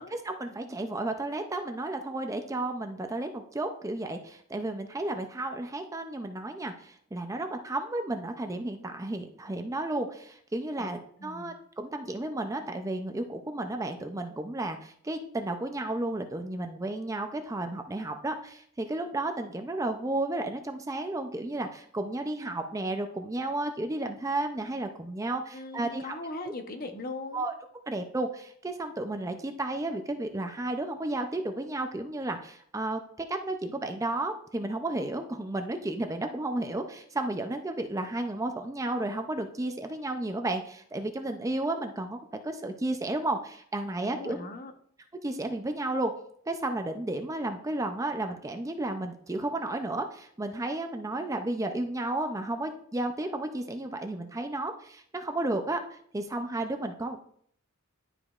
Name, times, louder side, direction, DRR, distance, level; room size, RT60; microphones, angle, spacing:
voice 1, 0.1-26.1 27.3-27.5 27.9-33.0 33.3-44.4 45.2-46.1 46.5-57.2, right 2 dB, 15° right, 6 dB, 0.4 m, -33 dB
voice 2, 11.2-11.5 25.5-27.5 44.0-44.7, left 2 dB, 45° left, 6 dB, 0.9 m, -39 dB
11.0 x 5.0 x 2.4 m, 0.64 s
head